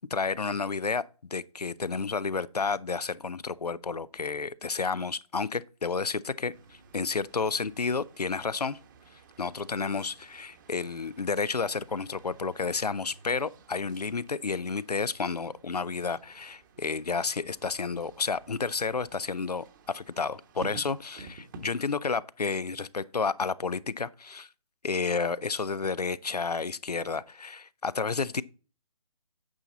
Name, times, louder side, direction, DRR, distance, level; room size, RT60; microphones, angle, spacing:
voice 1, 0.1-6.5 6.9-8.8 9.4-24.5 24.8-28.4, left 4 dB, 85° left, 0.6 m, -31 dB
sound 1, 6.5-21.9, right 4 dB, 30° right, 1.0 m, -52 dB
8.9 x 5.8 x 4.0 m
figure-of-eight pair, 145°, 20 cm